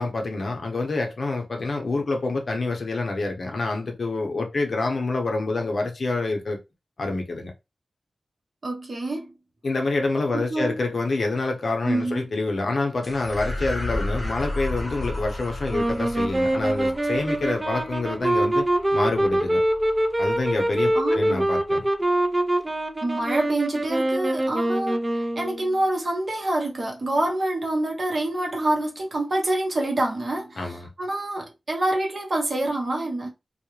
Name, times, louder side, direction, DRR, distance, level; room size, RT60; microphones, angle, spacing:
voice 1, 0.0-6.6 7.0-7.5 9.6-18.7 18.9-19.6 20.2-21.9 30.6-30.9, left 3 dB, 65° left, 0.6 m, -27 dB
voice 2, 8.6-9.3 10.3-10.8 11.8-12.3 20.9-21.5 23.0-33.3, right 1 dB, 50° right, 0.8 m, -26 dB
sound 1, 13.0-21.7, left 1 dB, 15° left, 0.8 m, -34 dB
sound 2, 15.7-25.7, right 1 dB, 20° right, 0.4 m, -24 dB
2.3 x 2.0 x 2.9 m
wide cardioid pair, 105°, 0 cm